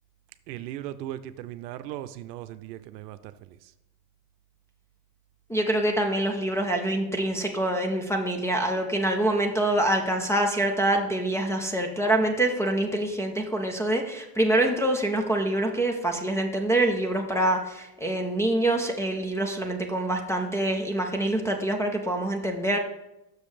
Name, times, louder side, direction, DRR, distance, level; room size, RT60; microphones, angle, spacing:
voice 1, 0.5-3.6, right 13 dB, 80° right, 12 dB, 0.7 m, -38 dB
voice 2, 5.5-22.8, right 1 dB, 5° left, 4 dB, 0.4 m, -25 dB
6.5 x 5.2 x 4.8 m, 0.90 s
supercardioid pair, 120°, 48 cm